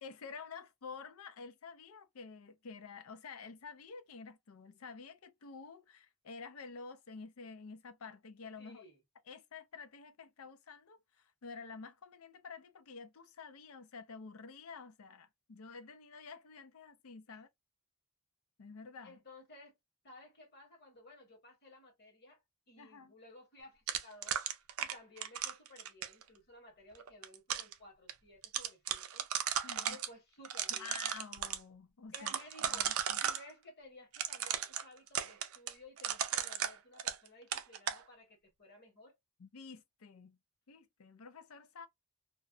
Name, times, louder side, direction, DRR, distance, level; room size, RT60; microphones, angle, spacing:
voice 1, 0.0-8.8 9.3-17.5 18.6-19.2 22.8-23.1 29.6-30.0 30.7-32.3 32.6-33.2 39.4-40.4 40.7-41.9, left 5 dB, 80° left, 0.5 m, -50 dB
voice 2, 8.6-9.0 17.3-17.4 19.0-19.7 20.0-22.4 22.7-24.4 24.8-29.2 29.8-31.0 32.1-32.9 33.2-39.2, left 1 dB, 50° left, 1.3 m, -56 dB
sound 1, 23.9-26.2 27.0-27.7 28.1-28.2 28.4-30.1 30.4-31.6 32.1-33.4 34.1-37.3 37.5-38.0, right 9 dB, 75° right, 0.4 m, -36 dB
2.5 x 2.1 x 2.4 m
head